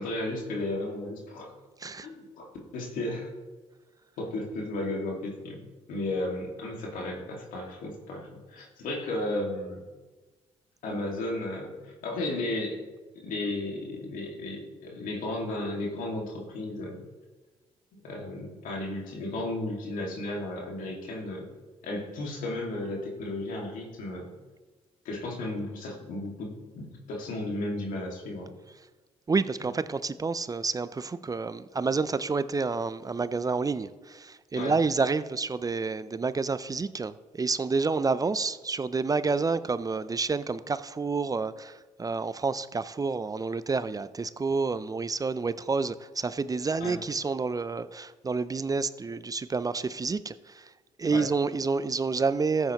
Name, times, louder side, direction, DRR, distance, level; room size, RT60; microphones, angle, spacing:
voice 1, 0.0-1.5 2.0-2.5 2.7-3.3 4.2-9.8 10.8-12.8 13.2-17.0 18.0-21.5 21.8-24.3 25.0-28.5 34.6-34.7 46.8-47.0 51.1-51.2, left 2 dB, 75° left, 2.1 m, -34 dB
voice 2, 29.3-50.7 51.0-52.7, right 4 dB, 25° right, 0.5 m, -29 dB
14.0 x 7.9 x 3.0 m
supercardioid pair, 55°, 14 cm